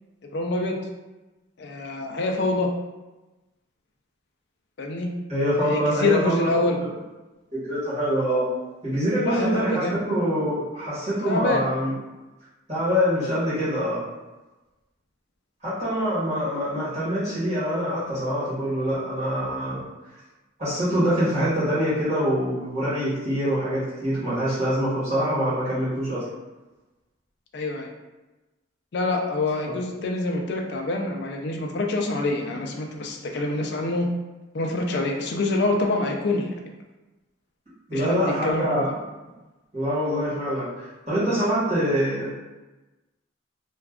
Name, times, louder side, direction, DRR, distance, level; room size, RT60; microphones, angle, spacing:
voice 1, 0.3-0.8 1.6-2.7 4.8-5.1 5.6-6.8 9.2-10.0 11.3-11.6 27.5-27.9 28.9-34.1 34.5-36.5 37.9-38.8, left 2 dB, 55° left, 2 dB, 0.4 m, -26 dB
voice 2, 5.3-6.6 7.5-8.5 8.8-11.9 12.7-14.0 15.6-19.8 20.6-26.2 29.6-29.7 37.9-38.9 39.7-42.3, equal, 35° right, -11 dB, 1.1 m, -25 dB
2.3 x 2.3 x 3.4 m, 1.1 s
head